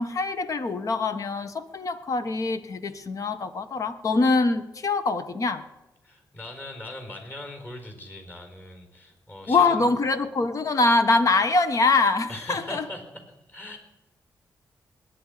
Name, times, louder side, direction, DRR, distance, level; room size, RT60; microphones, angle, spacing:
voice 1, 0.0-5.6 9.5-12.9, left 3 dB, 50° left, 1.2 m, -24 dB
voice 2, 6.0-9.9 12.3-13.0 13.5-13.8, left 1 dB, 25° left, 4.2 m, -40 dB
20.5 x 9.6 x 5.0 m
cardioid pair, 90°, 7 cm